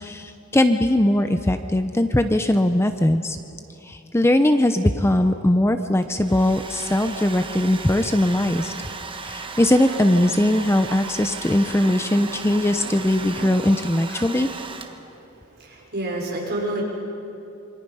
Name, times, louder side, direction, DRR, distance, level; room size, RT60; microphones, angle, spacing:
voice 1, 0.0-3.4 3.8-8.7 9.2-14.5, left 1 dB, 10° left, 8 dB, 0.6 m, -20 dB
Domestic sounds home sounds, 6.0-15.2, right 4 dB, 25° right, 1.2 m, -36 dB
sound 1, 8.5-13.6, right 3 dB, 65° right, 2.4 m, -41 dB
voice 2, 15.0-16.8, right 1 dB, 50° right, -2 dB, 5.7 m, -30 dB
27.0 x 25.0 x 5.6 m, 2.7 s
head